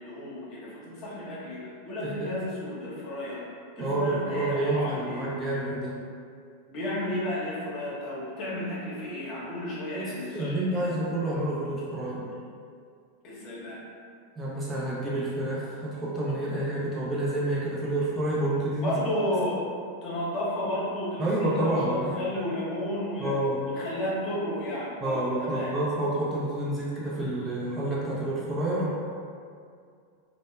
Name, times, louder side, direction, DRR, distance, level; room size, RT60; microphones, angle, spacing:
voice 1, 0.0-3.4 3.8-5.3 6.7-11.0 13.2-13.8 18.8-19.6 20.0-23.3 23.6-25.7, left 1 dB, 40° left, -7 dB, 0.8 m, -32 dB
voice 2, 2.0-2.4 3.8-6.0 9.9-12.3 14.4-18.9 21.2-22.1 23.2-23.6 25.0-29.0, right 1 dB, 20° right, -7 dB, 0.6 m, -29 dB
2.1 x 2.1 x 3.1 m, 2.2 s
hypercardioid pair, 95°, 0 cm